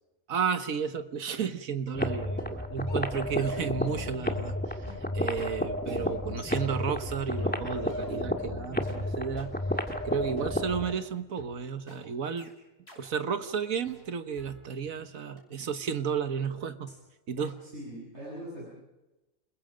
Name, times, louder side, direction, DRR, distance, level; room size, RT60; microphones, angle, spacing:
voice 1, 0.3-4.8 5.1-9.5 10.0-12.5 12.9-17.0 17.3-17.6, right 6 dB, 90° right, 10 dB, 1.6 m, -32 dB
sound 1, 1.9-2.0 2.4-2.6 2.9-4.1 4.4-8.5 8.9-9.0 9.4-9.5 9.9-10.0 10.4-10.5 10.9-11.0 11.4-11.5 11.9-12.0 12.4-12.5 12.9-13.0 13.4-13.5 13.9-15.0 15.4-15.5 15.9-16.0 16.4-16.5 16.9-17.0 17.4-17.5, left 2 dB, 50° left, 6.1 m, -49 dB
sound 2, 1.9-11.0, left 1 dB, 5° left, 1.6 m, -32 dB
voice 2, 17.6-18.7, equal, 55° right, -6 dB, 8.0 m, -41 dB
29.5 x 21.0 x 5.1 m, 1.0 s
omnidirectional pair, 1.4 m